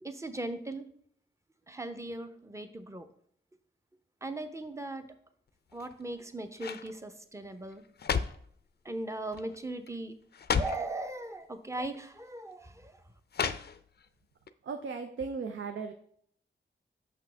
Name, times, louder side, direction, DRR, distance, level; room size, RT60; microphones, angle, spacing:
voice 1, 0.0-0.9 1.7-3.1 4.2-5.1 5.7-7.8 8.8-10.2 10.6-13.0, right 2 dB, 15° right, 8 dB, 0.7 m, -38 dB
sound 1, 5.7-6.1 6.6-6.9 7.7-8.5 9.3-9.6 9.9-10.0 10.3-10.9 11.8-12.0 13.3-14.1 14.5-14.6, left 6 dB, 55° left, 0.4 m, -33 dB
voice 2, 14.6-15.9, right 5 dB, 75° right, 6 dB, 0.5 m, -36 dB
6.1 x 5.7 x 3.4 m, 0.64 s
cardioid pair, 65°, 21 cm